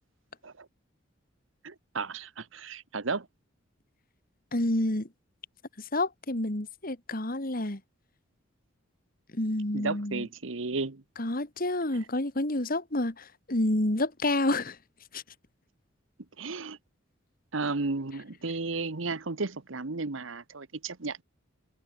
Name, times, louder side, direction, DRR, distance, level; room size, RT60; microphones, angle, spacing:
voice 1, 1.6-3.3 9.7-11.0 11.9-12.1 16.4-16.8 17.5-21.2, right 3 dB, 75° right, 1.2 m, -33 dB
voice 2, 4.5-5.1 5.9-7.8 9.3-10.3 11.2-14.8 15.1-15.2, left 1 dB, 45° left, 2.4 m, -29 dB
head